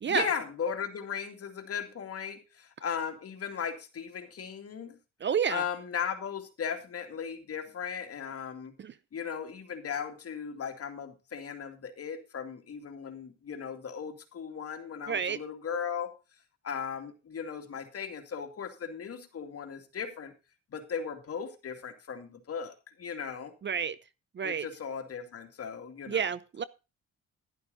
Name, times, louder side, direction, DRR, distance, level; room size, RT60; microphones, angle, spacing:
voice 1, 0.0-5.0 5.5-8.7 9.1-16.1 16.6-20.3 20.7-23.5 24.4-26.3, left 7 dB, 50° left, 6 dB, 2.5 m, -37 dB
voice 2, 5.2-5.6 8.8-8.9 15.1-15.4 23.6-24.0 24.3-24.7 26.1-26.6, right 7 dB, 40° right, 17 dB, 0.7 m, -29 dB
11.5 x 11.0 x 4.0 m, 0.30 s
cardioid pair, 90°, 30 cm